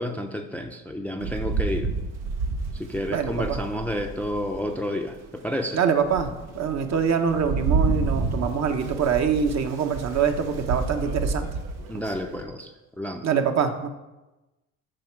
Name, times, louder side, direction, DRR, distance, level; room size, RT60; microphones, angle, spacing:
voice 1, 0.0-1.9 2.7-5.8 11.9-13.3, equal, 5° left, 4 dB, 0.6 m, -30 dB
Rain, 1.2-4.7 5.3-5.4 5.8-12.4, right 3 dB, 75° right, 1.2 m, -30 dB
voice 2, 3.1-3.6 5.7-11.5 13.2-13.9, right 7 dB, 45° right, 6 dB, 0.9 m, -24 dB
7.7 x 4.2 x 6.1 m, 1.1 s
supercardioid pair, 90°, 37 cm